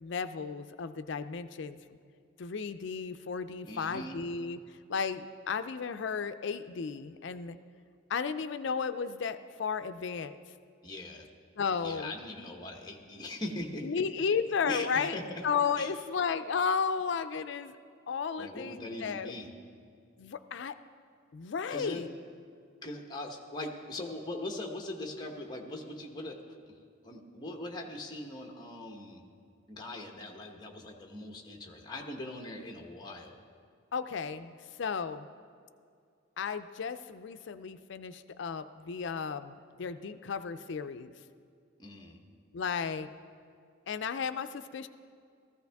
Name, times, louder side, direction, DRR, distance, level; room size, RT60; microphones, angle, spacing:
voice 1, 0.0-1.8 2.4-4.6 4.9-7.6 8.1-10.4 11.6-12.1 13.8-15.2 15.4-17.8 18.1-19.3 20.2-20.7 21.3-22.1 33.9-35.3 36.4-41.1 42.5-43.1 43.9-44.9, left 6 dB, 60° left, 11 dB, 0.4 m, -34 dB
voice 2, 3.6-4.2 10.8-11.3 11.8-13.9 14.6-15.4 15.8-15.9 18.4-19.5 21.7-22.1 22.8-26.4 26.7-26.8 27.0-29.2 29.7-33.4 41.8-42.2, left 1 dB, 20° left, 2 dB, 1.1 m, -41 dB
15.5 x 14.5 x 3.5 m, 2.3 s
head